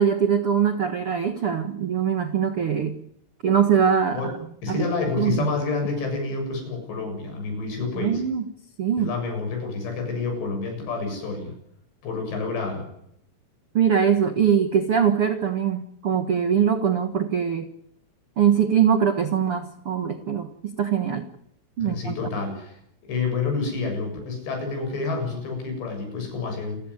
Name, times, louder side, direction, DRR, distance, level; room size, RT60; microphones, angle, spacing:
voice 1, 0.0-3.0 3.4-4.4 4.7-4.8 5.2-5.5 7.9-8.5 8.8-9.1 13.7-17.7 18.4-21.3 21.8-22.1, right 8 dB, 75° right, 9 dB, 1.3 m, -22 dB
voice 2, 4.6-8.2 9.0-11.5 12.0-12.9 21.8-22.8 23.1-26.8, left 4 dB, 80° left, 4 dB, 9.4 m, -28 dB
28.0 x 15.0 x 9.9 m, 0.74 s
omnidirectional pair, 4.9 m